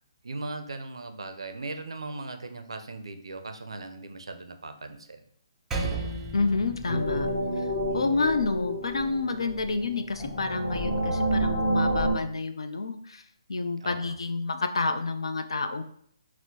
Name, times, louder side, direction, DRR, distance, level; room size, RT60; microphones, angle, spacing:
voice 1, 0.2-5.2 7.9-8.3 13.8-14.2, right 3 dB, 80° right, 7 dB, 0.4 m, -39 dB
Percussion, 5.7-10.5, right 2 dB, 10° right, 0.4 m, -37 dB
voice 2, 6.3-7.3 7.6-7.7 7.9-13.2 13.5-15.8, left 3 dB, 80° left, 8 dB, 0.3 m, -29 dB
sound 1, 6.9-12.2, right 1 dB, 30° left, 0.8 m, -29 dB
4.3 x 2.0 x 2.6 m, 0.64 s
hypercardioid pair, 145°, 3 cm